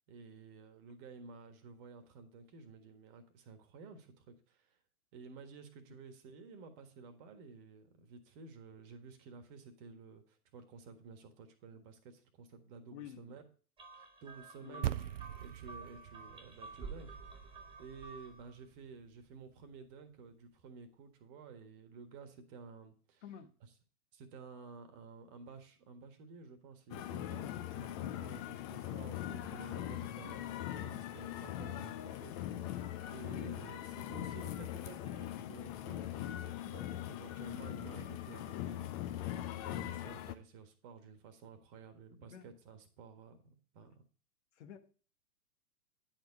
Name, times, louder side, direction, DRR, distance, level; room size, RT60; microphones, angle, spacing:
voice 1, 0.1-4.8 5.1-13.4 13.9-15.1 15.4-17.5 17.8-23.2 23.6-23.7 24.1-32.8 33.1-38.8 39.1-43.9, right 4 dB, 35° right, 7 dB, 1.6 m, -53 dB
voice 2, 12.9-13.2 14.6-15.0 23.2-23.5 33.4-33.5 42.2-42.5 44.6-44.8, left 9 dB, 50° left, 7 dB, 1.3 m, -50 dB
sound 1, 13.8-18.5, right 4 dB, 10° right, 1.2 m, -50 dB
sound 2, 14.8-19.4, right 13 dB, 55° right, 0.5 m, -43 dB
sound 3, 26.9-40.3, left 12 dB, 25° left, 0.6 m, -41 dB
10.0 x 4.4 x 5.8 m, 0.40 s
figure-of-eight pair, 110°, 45 cm